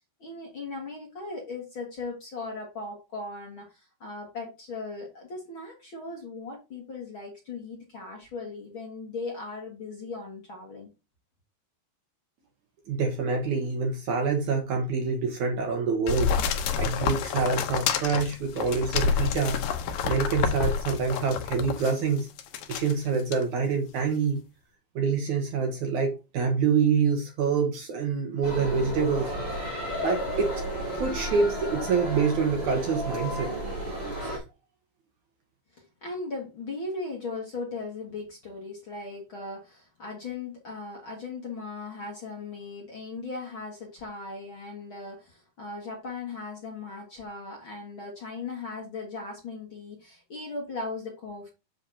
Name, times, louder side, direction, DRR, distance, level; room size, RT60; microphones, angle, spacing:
voice 1, 0.2-10.9 35.7-51.5, left 3 dB, 45° left, 2.0 m, -38 dB
voice 2, 12.9-16.4 16.8-19.6 20.0-22.3 22.7-24.4 25.0-29.3 30.0-30.5 30.9-33.5 34.2-34.4, right 5 dB, 60° right, 2.3 m, -26 dB
sound 1, 16.1-21.9 22.4-22.9 23.3-23.4, left 6 dB, 70° left, 2.4 m, -28 dB
sound 2, 28.4-34.4, equal, 10° right, 3.7 m, -33 dB
7.9 x 7.1 x 2.8 m
omnidirectional pair, 4.4 m